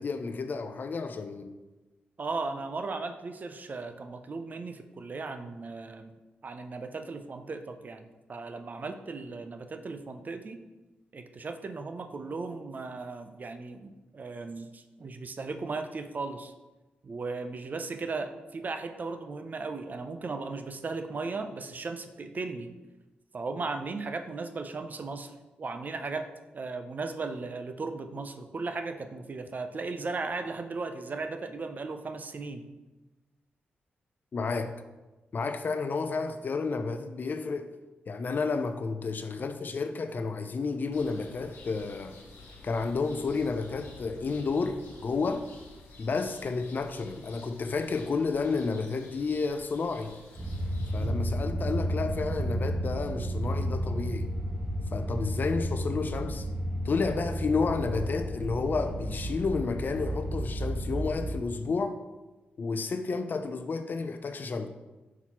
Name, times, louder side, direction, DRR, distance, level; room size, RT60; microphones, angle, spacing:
voice 1, 0.0-1.5 34.3-34.7 35.3-37.7 38.1-42.2 42.6-45.5 46.0-50.2 50.9-54.3 54.9-56.5 56.8-62.0 62.6-64.7, left 4 dB, 50° left, 0.5 m, -31 dB
voice 2, 2.2-10.7 11.1-16.5 17.0-22.7 23.3-25.3 25.6-26.3 26.5-32.7 51.0-51.2, right 3 dB, 45° right, 0.6 m, -36 dB
sound 1, 40.9-51.1, left 3 dB, 75° left, 1.2 m, -51 dB
sound 2, 50.4-61.3, equal, 20° right, 1.8 m, -32 dB
5.9 x 5.6 x 3.0 m
cardioid pair, 60°, 4 cm